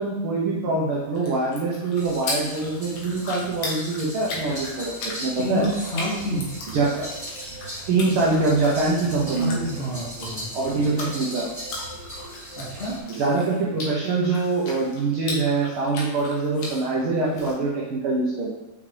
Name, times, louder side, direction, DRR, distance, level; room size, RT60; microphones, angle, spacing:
voice 1, 0.0-5.6 6.7-6.9 7.9-9.6 10.5-11.4 13.1-18.5, right 3 dB, 75° right, -4 dB, 1.2 m, -24 dB
sound 1, 0.9-17.5, left 2 dB, 70° left, 2.7 m, -38 dB
sound 2, 2.0-13.0, equal, 5° right, 1.1 m, -38 dB
voice 2, 5.4-6.5 9.4-10.5 12.5-13.0, equal, 25° left, -10 dB, 2.2 m, -28 dB
6.1 x 5.7 x 3.3 m, 0.99 s
omnidirectional pair, 3.8 m